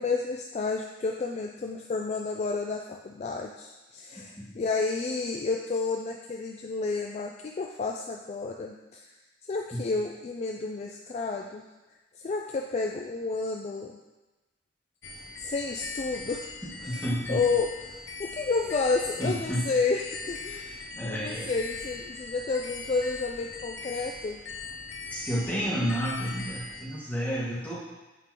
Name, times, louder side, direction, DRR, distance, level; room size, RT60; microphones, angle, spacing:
voice 1, 0.0-9.2 9.5-11.6 12.1-14.0 15.4-16.5 16.8-24.4, left 4 dB, 35° left, 2 dB, 0.3 m, -31 dB
sound 1, 15.0-26.9, left 3 dB, 75° left, 0.7 m, -40 dB
voice 2, 16.9-17.4 19.2-19.7 20.5-20.6 20.9-21.5 25.1-27.8, equal, 10° left, -8 dB, 1.7 m, -30 dB
8.1 x 5.2 x 2.9 m, 1.1 s
head